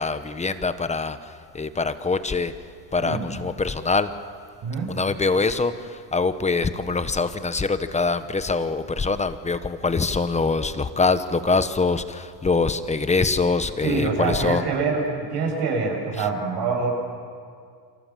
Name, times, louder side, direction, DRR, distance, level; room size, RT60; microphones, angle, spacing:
voice 1, 0.0-2.5 2.9-4.1 4.9-14.6, left 4 dB, 15° left, 11 dB, 1.0 m, -24 dB
voice 2, 13.8-15.0 15.3-16.9, right 4 dB, 55° right, 2 dB, 7.8 m, -25 dB
29.0 x 25.5 x 7.7 m, 2.2 s
cardioid pair, 125°, 47 cm